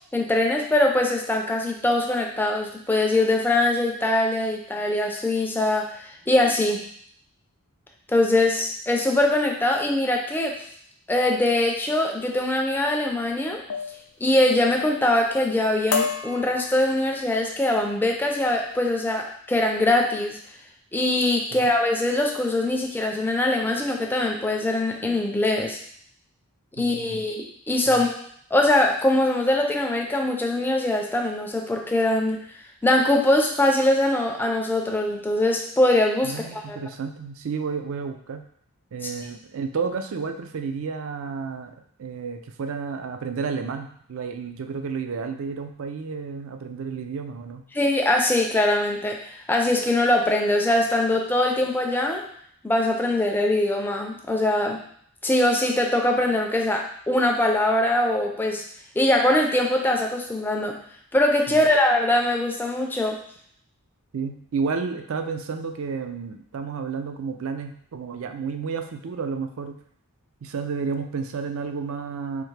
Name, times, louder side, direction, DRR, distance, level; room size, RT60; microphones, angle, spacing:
voice 1, 0.1-6.8 8.1-10.5 11.1-13.6 14.2-20.4 20.9-25.8 26.8-28.1 28.5-32.4 32.8-36.8 47.7-52.2 52.6-54.8 55.2-58.6 59.0-60.8 61.1-63.2, left 1 dB, 10° left, 1 dB, 0.4 m, -22 dB
sound 1, 12.7-13.0 13.7-14.0 14.4-14.9 15.3-15.6 15.9-17.2 17.8-18.1 18.5-18.8, left 5 dB, 70° left, 0.5 m, -31 dB
voice 2, 26.8-27.2 27.9-28.0 36.2-38.4 38.9-47.6 61.5-61.7 64.1-69.8 70.4-72.4, right 5 dB, 60° right, 6 dB, 0.4 m, -31 dB
3.5 x 2.8 x 3.2 m, 0.63 s
head